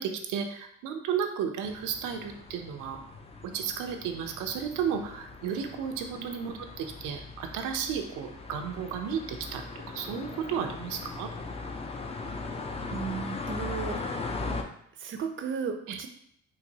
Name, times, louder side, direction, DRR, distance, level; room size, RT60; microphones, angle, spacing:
voice 1, 0.0-3.0 3.5-9.6 9.9-11.3 14.4-14.6 15.9-16.0, right 7 dB, 90° right, 5 dB, 0.5 m, -33 dB
sound 1, 1.6-14.6, left 3 dB, 20° left, 0.4 m, -39 dB
voice 2, 12.9-14.0 15.0-16.1, right 6 dB, 40° right, 6 dB, 0.5 m, -34 dB
4.0 x 2.5 x 2.7 m, 0.70 s
cardioid pair, 90°, 30 cm